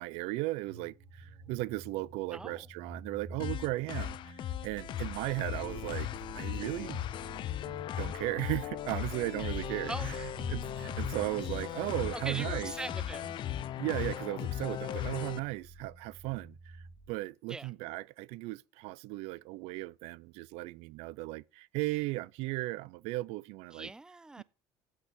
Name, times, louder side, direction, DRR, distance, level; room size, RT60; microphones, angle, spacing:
voice 1, 0.0-6.1 6.3-7.0 7.6-10.1 10.5-12.7 13.8-23.9 24.4-24.5, right 20 dB, 80° right, 0.4 m, -36 dB
sound 1, 0.6-17.1, right 1 dB, 60° right, 6.1 m, -48 dB
voice 2, 2.3-2.7 9.9-10.3 12.1-13.4 17.5-17.7 23.7-24.4, right 2 dB, 5° right, 0.4 m, -41 dB
sound 2, 3.4-15.4, left 11 dB, 50° left, 0.6 m, -37 dB
14.5 x 8.3 x 3.6 m
cardioid pair, 120°, 10 cm